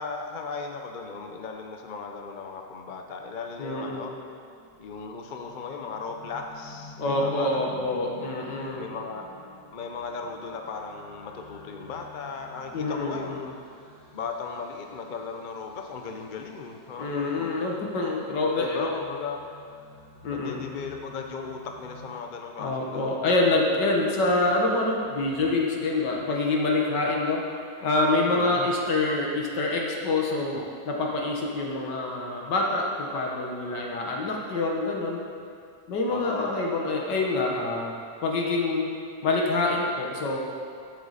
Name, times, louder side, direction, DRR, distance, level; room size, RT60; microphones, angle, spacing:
voice 1, 0.0-4.1 4.8-7.8 8.8-9.2 9.7-13.6 14.1-17.5 18.6-19.4 20.3-23.6 28.3-28.7 30.5-30.6 36.1-36.5, left 5 dB, 55° left, 3 dB, 0.5 m, -37 dB
voice 2, 3.6-4.1 7.0-8.9 12.7-13.4 17.0-18.9 20.2-20.6 22.6-27.4 27.8-30.6 30.9-35.2 35.9-37.9 38.2-38.9 39.2-40.4, left 2 dB, 70° left, -1 dB, 2.0 m, -26 dB
sound 1, 4.4-22.2, left 3 dB, 85° left, 2.3 m, -49 dB
13.0 x 7.8 x 4.2 m, 2.4 s
omnidirectional pair, 2.0 m